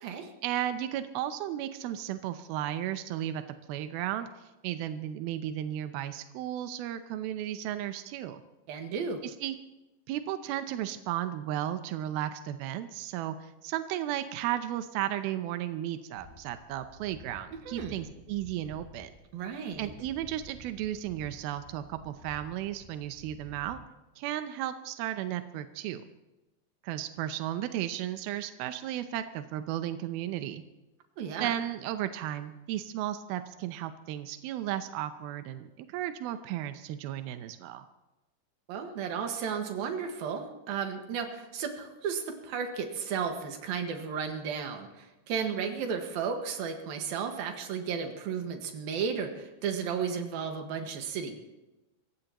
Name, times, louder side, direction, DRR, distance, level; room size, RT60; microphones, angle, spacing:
voice 1, 0.4-3.4 3.7-8.4 9.2-9.6 10.1-19.1 19.8-23.8 24.2-26.0 26.8-30.6 31.4-37.9, right 12 dB, 80° right, 9 dB, 2.2 m, -34 dB
voice 2, 8.7-9.2 17.7-18.0 19.3-19.9 31.2-31.5 38.7-51.4, right 6 dB, 65° right, 4 dB, 3.1 m, -34 dB
sound 1, 16.1-23.7, left 1 dB, 30° left, 2.8 m, -52 dB
27.0 x 15.5 x 3.0 m, 1.0 s
omnidirectional pair, 5.2 m